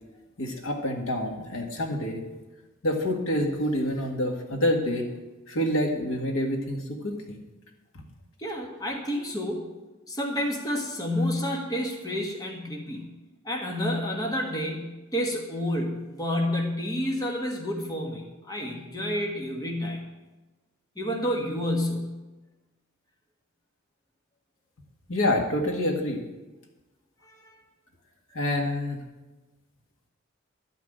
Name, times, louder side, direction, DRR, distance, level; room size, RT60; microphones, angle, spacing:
voice 1, 0.4-2.2 2.8-5.0 5.5-7.4 7.9-8.0 25.1-26.2 28.3-29.0, left 1 dB, 70° left, 2 dB, 1.9 m, -27 dB
voice 2, 8.4-9.7 10.1-13.1 13.4-20.0 21.0-22.2 27.2-27.6, left 1 dB, 15° left, 0 dB, 1.4 m, -29 dB
12.0 x 6.1 x 8.9 m, 1.1 s
head